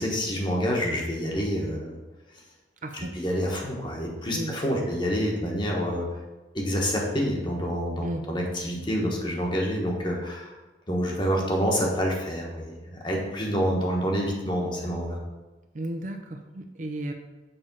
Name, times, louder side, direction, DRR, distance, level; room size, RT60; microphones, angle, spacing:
voice 1, 0.0-2.0 2.9-6.1 6.5-10.5 10.9-12.8 13.0-15.2, equal, 25° left, -1 dB, 1.3 m, -27 dB
voice 2, 2.8-3.1 4.3-4.9 8.0-8.2 15.7-17.1, right 1 dB, 45° right, 5 dB, 0.6 m, -34 dB
7.0 x 3.5 x 5.4 m, 1.2 s
head